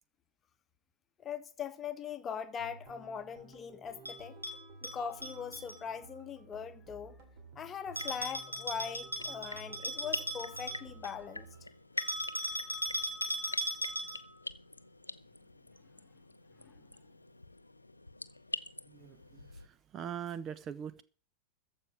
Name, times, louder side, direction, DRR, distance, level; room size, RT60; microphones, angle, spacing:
voice 1, 1.2-4.4 4.8-7.2 7.6-11.5 16.6-16.7, left 7 dB, 25° left, 1.1 m, -41 dB
sound 1, 2.6-11.7, right 2 dB, 45° right, 3.0 m, -54 dB
Bell, 4.0-5.8 8.0-11.2 12.0-14.4, equal, 90° right, 2.6 m, -38 dB
sound 2, 7.9-19.7, left 2 dB, 85° left, 0.6 m, -46 dB
voice 2, 18.9-21.0, right 8 dB, 30° right, 0.8 m, -42 dB
14.5 x 5.2 x 9.3 m
figure-of-eight pair, 90°, 0 cm